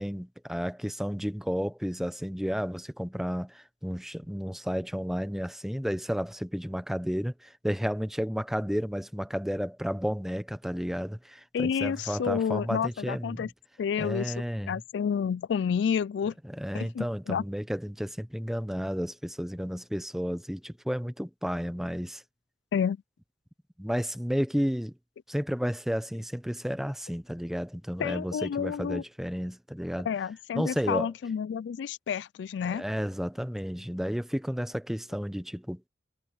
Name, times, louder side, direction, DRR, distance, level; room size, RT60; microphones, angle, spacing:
voice 1, 0.0-13.5 14.0-14.7 16.5-22.2 23.8-24.9 25.3-30.1 30.6-31.1 32.7-35.9, equal, ahead, 0.8 m, -32 dB
voice 2, 11.5-13.5 13.8-16.3 16.7-17.4 22.7-23.0 28.0-29.0 30.1-32.8, left 7 dB, 80° left, 0.3 m, -30 dB
head